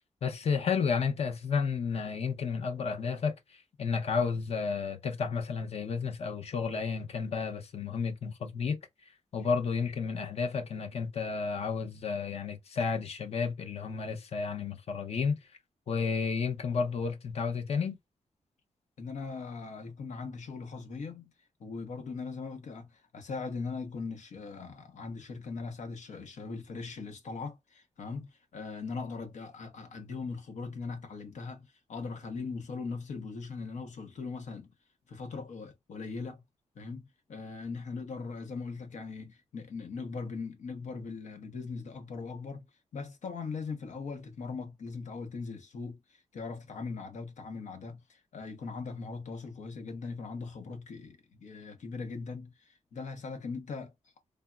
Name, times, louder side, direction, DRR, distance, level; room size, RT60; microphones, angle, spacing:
voice 1, 0.2-3.3 3.8-8.8 9.3-15.4 15.9-18.0, left 5 dB, 60° left, 0.7 m, -31 dB
voice 2, 19.0-21.3 21.6-34.7 35.1-36.4 36.7-37.0 37.3-42.7 42.9-53.9, left 4 dB, 85° left, 0.8 m, -40 dB
3.5 x 2.0 x 2.3 m
wide cardioid pair, 160°, 12 cm